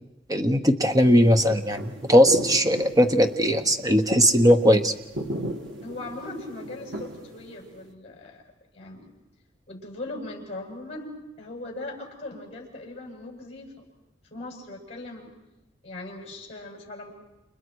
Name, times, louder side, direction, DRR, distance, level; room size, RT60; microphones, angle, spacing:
voice 1, 0.3-4.9, equal, 20° right, 7 dB, 1.1 m, -19 dB
Fireworks Distant A, 0.8-7.9, equal, 80° right, 1.8 m, -36 dB
voice 2, 5.8-8.4 8.7-9.1 9.7-13.7 14.3-15.3 15.8-17.1, left 2 dB, 35° left, 0 dB, 7.7 m, -39 dB
30.0 x 29.5 x 4.8 m, 0.96 s
head